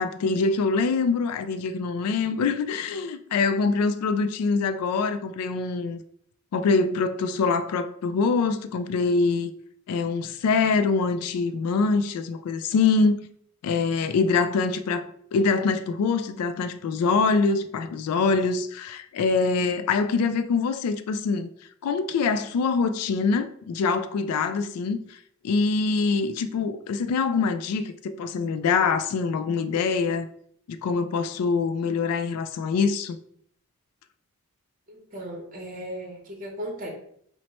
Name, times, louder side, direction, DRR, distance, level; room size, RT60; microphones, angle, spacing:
voice 1, 0.0-6.0 6.5-9.5 9.9-13.3 13.6-21.5 21.8-25.2 25.4-30.3 30.7-33.2, left 4 dB, 90° left, 0.3 m, -24 dB
voice 2, 34.9-36.9, equal, 40° right, 0.8 m, -36 dB
4.1 x 2.1 x 3.0 m
head